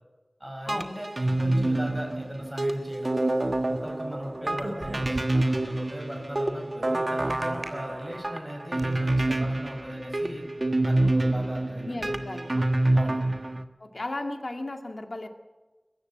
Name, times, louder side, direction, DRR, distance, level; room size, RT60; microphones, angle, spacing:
voice 1, 0.4-3.3 3.7-10.4 10.8-12.1 12.9-13.2, equal, 15° right, 1 dB, 5.3 m, -38 dB
sound 1, 0.7-13.6, right 1 dB, 55° right, 1.4 m, -27 dB
sound 2, 4.4-5.6 7.3-7.7 8.3-8.9, right 1 dB, 80° right, 3.5 m, -37 dB
voice 2, 11.9-12.7 13.8-15.3, left 2 dB, 80° left, 5 dB, 2.0 m, -35 dB
22.5 x 14.5 x 8.6 m, 1.2 s
wide cardioid pair, 45°, 0 cm